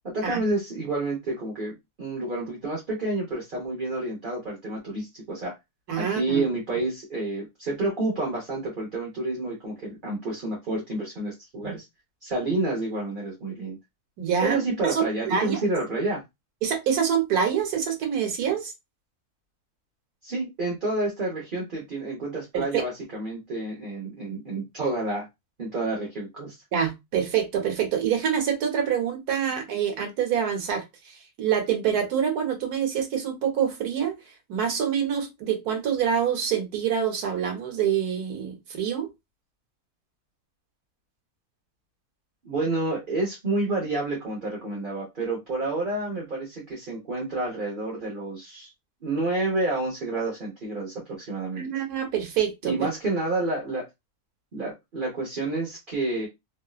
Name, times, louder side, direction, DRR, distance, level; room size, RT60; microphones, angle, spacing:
voice 1, 0.0-5.5 6.0-11.8 12.2-13.8 14.4-16.2 20.2-25.3 25.6-26.5 42.4-48.7 49.0-51.7 52.6-53.9 54.5-56.3, right 2 dB, 35° right, -3 dB, 1.2 m, -29 dB
voice 2, 5.9-6.4 11.6-11.7 14.2-14.6 14.8-15.6 16.6-18.7 22.5-22.8 26.7-34.2 34.5-39.1 51.6-52.9, right 8 dB, 85° right, 4 dB, 1.5 m, -26 dB
3.1 x 2.8 x 2.4 m, 0.20 s
omnidirectional pair, 1.6 m